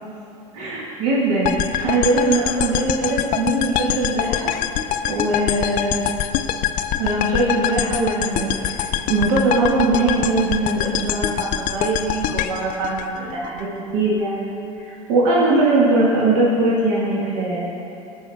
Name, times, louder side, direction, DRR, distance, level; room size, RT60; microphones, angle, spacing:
voice 1, 0.5-4.5 5.0-6.0 7.0-13.7 13.9-14.5 14.8-17.7, right 2 dB, 65° right, -5 dB, 1.6 m, -21 dB
sound 1, 1.4-13.6, left 10 dB, 50° left, 0.4 m, -24 dB
14.0 x 5.0 x 3.4 m, 2.9 s
hypercardioid pair, 85°, 18 cm